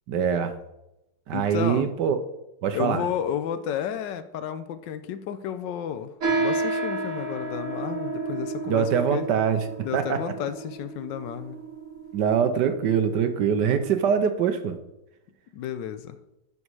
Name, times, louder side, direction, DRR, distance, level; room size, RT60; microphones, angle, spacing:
voice 1, 0.1-0.5 1.3-2.2 2.6-3.1 8.7-9.6 9.9-10.2 12.1-14.8, right 7 dB, 65° right, 1.2 m, -23 dB
voice 2, 1.3-1.9 2.7-9.3 9.8-11.6 15.5-16.2, left 9 dB, 70° left, 1.1 m, -32 dB
sound 1, 6.2-14.0, right 3 dB, 40° right, 1.6 m, -31 dB
11.0 x 5.4 x 4.7 m
omnidirectional pair, 2.4 m